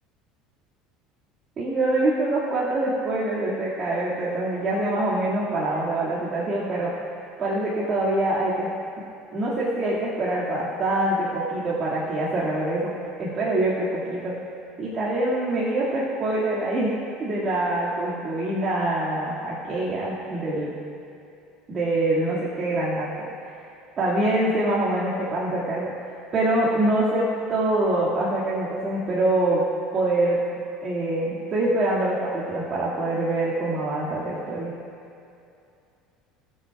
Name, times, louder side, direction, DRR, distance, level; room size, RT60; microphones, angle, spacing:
voice 1, 1.6-6.9 7.4-8.7 9.3-14.3 14.8-20.7 21.7-23.1 23.4-23.5 24.0-25.9 26.3-29.6 29.9-30.4 30.8-34.7, right 1 dB, 35° right, -8 dB, 1.9 m, -25 dB
21.5 x 7.5 x 2.3 m, 2.6 s
supercardioid pair, 125°, 0 cm